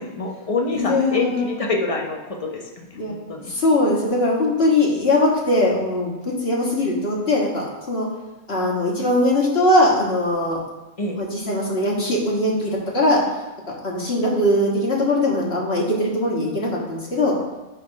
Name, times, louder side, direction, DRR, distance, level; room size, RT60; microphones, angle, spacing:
voice 1, 0.0-3.5 11.0-11.2, left 3 dB, 30° left, 0 dB, 0.8 m, -26 dB
voice 2, 0.7-1.5 3.0-3.1 3.5-8.1 8.5-10.6 11.2-13.2 13.8-17.4, left 1 dB, 50° left, -3 dB, 1.8 m, -20 dB
9.0 x 3.4 x 5.3 m, 1.1 s
omnidirectional pair, 1.4 m